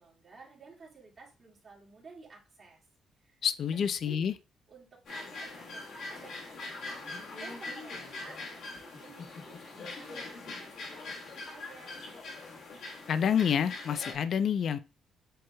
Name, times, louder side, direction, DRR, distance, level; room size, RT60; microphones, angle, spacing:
voice 1, 0.0-2.8 3.2-3.4 3.7-4.2 4.7-12.0, right 4 dB, 35° right, 1.9 m, -53 dB
voice 2, 3.4-4.3 13.1-14.8, left 8 dB, 55° left, 0.4 m, -28 dB
sound 1, 5.1-14.1, left 3 dB, 70° left, 1.5 m, -42 dB
7.6 x 3.0 x 2.2 m
cardioid pair, 135°, 0 cm